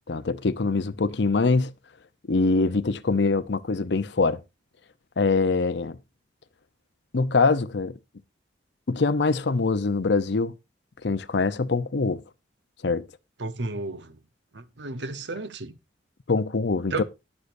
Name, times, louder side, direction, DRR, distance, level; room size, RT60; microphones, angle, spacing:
voice 1, 0.1-1.7 2.3-4.4 5.2-6.0 7.1-7.9 8.9-10.5 11.0-12.2 12.8-13.0 16.3-17.0, left 3 dB, 65° left, 0.7 m, -23 dB
voice 2, 13.4-14.2 14.5-15.8 16.9-17.0, right 3 dB, 65° right, 1.0 m, -33 dB
19.5 x 6.7 x 2.6 m
head